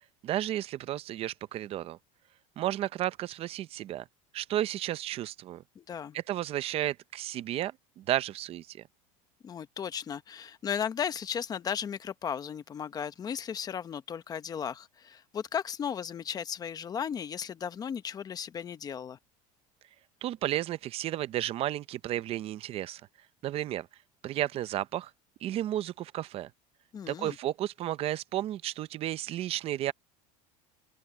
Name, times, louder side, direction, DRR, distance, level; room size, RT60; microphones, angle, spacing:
voice 1, 0.2-2.0 2.6-4.0 4.3-5.6 6.1-8.8 20.2-23.0 23.4-23.9 24.2-25.1 25.4-26.5 27.1-29.9, right 13 dB, 35° right, 0.6 m, -33 dB
voice 2, 5.8-6.2 9.4-19.2 26.9-27.4, left 8 dB, 20° left, 0.8 m, -35 dB
open air
cardioid pair, 160°, 17 cm